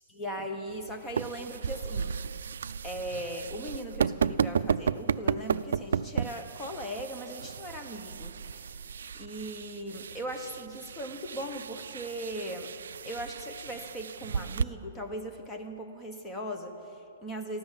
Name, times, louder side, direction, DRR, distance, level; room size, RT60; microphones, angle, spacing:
voice 1, 0.1-2.5 2.8-8.9 9.1-12.7 13.0-17.6, equal, 10° left, 3 dB, 1.0 m, -39 dB
sound 1, 0.7-14.6, right 7 dB, 75° right, 0.3 m, -34 dB
14.0 x 12.0 x 7.4 m, 2.7 s
hypercardioid pair, 170°, 0 cm